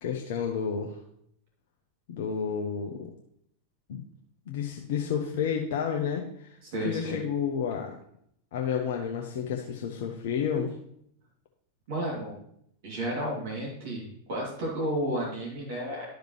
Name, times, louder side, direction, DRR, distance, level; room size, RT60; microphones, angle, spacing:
voice 1, 0.0-1.0 2.1-3.1 3.9-4.0 4.5-6.6 6.8-8.0 8.5-10.7, left 7 dB, 55° left, 2 dB, 0.8 m, -30 dB
voice 2, 6.6-7.2 11.9-12.3 12.8-16.1, right 1 dB, 50° right, -4 dB, 2.7 m, -32 dB
12.0 x 5.1 x 3.2 m, 0.72 s
figure-of-eight pair, 90°, 0 cm